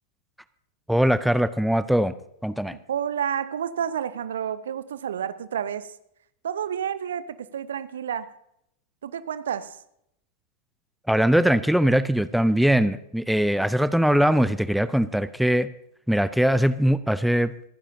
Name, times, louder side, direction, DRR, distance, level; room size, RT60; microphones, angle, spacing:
voice 1, 0.9-2.1 2.4-2.8 11.1-15.7 16.1-17.5, equal, ahead, 14 dB, 0.5 m, -21 dB
voice 2, 2.7-6.0 6.4-8.3 9.0-9.8, right 8 dB, 65° right, 16 dB, 0.7 m, -30 dB
27.5 x 10.0 x 2.8 m, 0.77 s
figure-of-eight pair, 90°, 0 cm